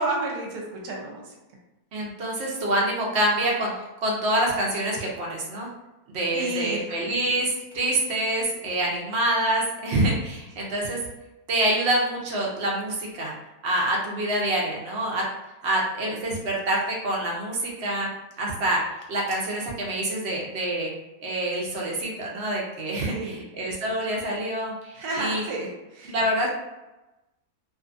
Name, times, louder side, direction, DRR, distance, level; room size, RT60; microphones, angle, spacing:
voice 1, 0.0-1.3 6.3-6.9 23.1-23.4 24.9-26.1, right 2 dB, 75° right, -2 dB, 1.2 m, -31 dB
voice 2, 1.9-3.7 4.0-5.7 6.1-11.0 11.5-13.3 13.6-15.2 15.6-18.1 18.4-18.8 19.1-20.9 21.2-25.4 26.0-26.5, right 1 dB, 60° right, -3 dB, 0.7 m, -26 dB
2.6 x 2.4 x 2.5 m, 1.0 s
omnidirectional pair, 1.7 m